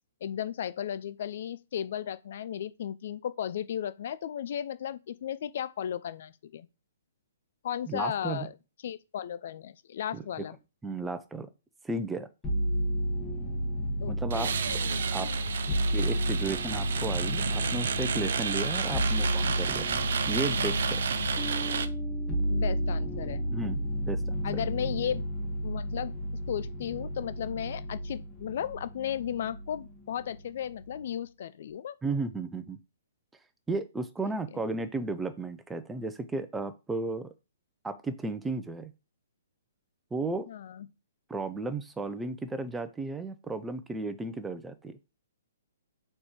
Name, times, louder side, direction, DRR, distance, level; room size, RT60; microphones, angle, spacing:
voice 1, 0.2-6.7 7.6-8.5 8.8-10.6 14.0-14.5 15.7-15.8 19.0-19.1 22.5-23.5 24.4-25.2 25.6-26.1 26.5-32.0 34.2-34.3 40.5-40.9, left 9 dB, 55° left, 0.5 m, -35 dB
voice 2, 7.9-8.5 10.1-10.2 10.8-11.5 11.8-12.3 14.1-14.5 15.1-15.3 15.9-19.9 20.3-21.0 23.5-23.8 24.1-24.4 32.0-32.8 33.7-37.3 37.8-38.9 40.1-40.5 41.3-45.0, right 3 dB, 10° right, 0.6 m, -34 dB
sound 1, 12.4-29.9 30.2-31.0, equal, 15° left, 1.5 m, -31 dB
sound 2, 14.3-21.9, right 6 dB, 65° right, 0.6 m, -32 dB
Bass guitar, 21.4-24.8, right 2 dB, 30° left, 1.4 m, -44 dB
4.3 x 4.3 x 5.0 m
hypercardioid pair, 130°, 0 cm